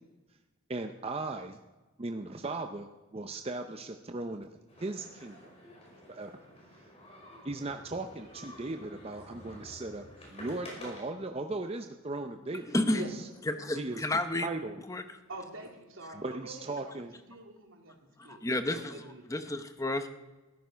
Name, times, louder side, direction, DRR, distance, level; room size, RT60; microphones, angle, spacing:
voice 1, 0.7-1.6 2.0-4.5 4.8-5.4 6.1-6.5 7.4-13.2 13.7-14.0 14.4-14.8 16.1-17.1, right 2 dB, 30° right, 6 dB, 0.6 m, -38 dB
sound 1, 4.7-11.0, equal, 30° left, 5.1 m, -50 dB
voice 2, 12.7-13.0 13.5-14.5 14.9-15.0 18.2-18.9 19.3-20.1, left 1 dB, 15° left, 8 dB, 0.8 m, -31 dB
voice 3, 15.3-18.4 18.7-19.5, right 2 dB, 75° right, 2 dB, 2.8 m, -45 dB
14.0 x 12.0 x 5.7 m, 1.2 s
head